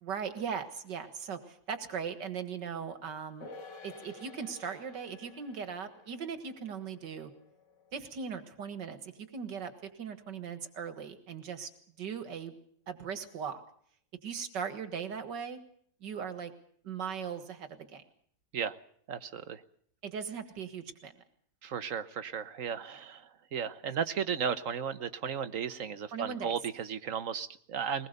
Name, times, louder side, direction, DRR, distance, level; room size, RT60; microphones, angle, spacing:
voice 1, 0.0-3.5 3.8-7.3 7.9-9.7 10.0-11.7 12.0-12.6 12.9-13.6 14.2-15.6 16.0-16.5 16.8-18.0 20.0-21.2 26.1-26.6, right 6 dB, 85° right, 10 dB, 2.2 m, -39 dB
sound 1, 3.4-10.1 10.4-10.5, left 3 dB, 85° left, 3.1 m, -53 dB
voice 2, 19.1-19.6 21.6-23.2 23.5-28.1, right 7 dB, 50° right, 12 dB, 1.4 m, -35 dB
22.0 x 20.0 x 6.7 m, 0.62 s
omnidirectional pair, 1.8 m